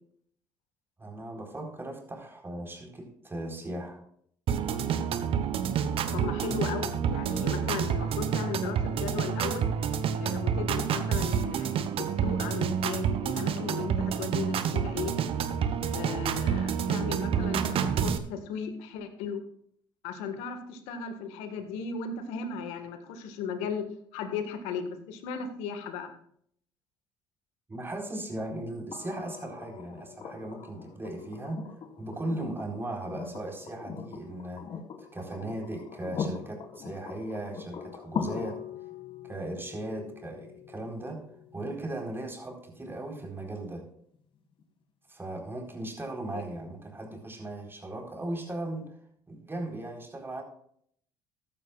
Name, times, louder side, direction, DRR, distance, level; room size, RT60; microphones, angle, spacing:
voice 1, 1.0-4.0 10.6-10.8 27.7-31.6 32.0-34.7 35.1-38.6 39.2-41.2 41.5-43.8 45.1-48.9 49.3-50.4, right 1 dB, 20° right, 1 dB, 4.3 m, -37 dB
sound 1, 4.5-18.2, right 7 dB, 60° right, 1.1 m, -28 dB
voice 2, 6.1-9.7 10.2-15.1 15.9-19.4 20.0-23.8 24.1-26.1 46.3-46.4, left 6 dB, 80° left, 7 dB, 1.7 m, -36 dB
sound 2, 28.9-42.9 44.6-44.7, left 6 dB, 55° left, 2.0 m, -41 dB
15.0 x 12.0 x 2.5 m, 0.65 s
supercardioid pair, 70°, 11 cm